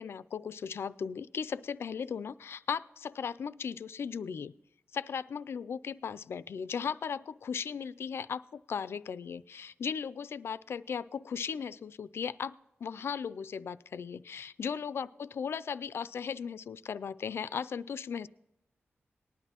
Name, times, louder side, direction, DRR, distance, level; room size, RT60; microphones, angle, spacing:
voice 1, 0.0-4.5 4.9-12.5 12.8-18.3, left 6 dB, 70° left, 16 dB, 0.3 m, -37 dB
19.0 x 11.0 x 2.9 m, 0.90 s
wide cardioid pair, 140°, 4 cm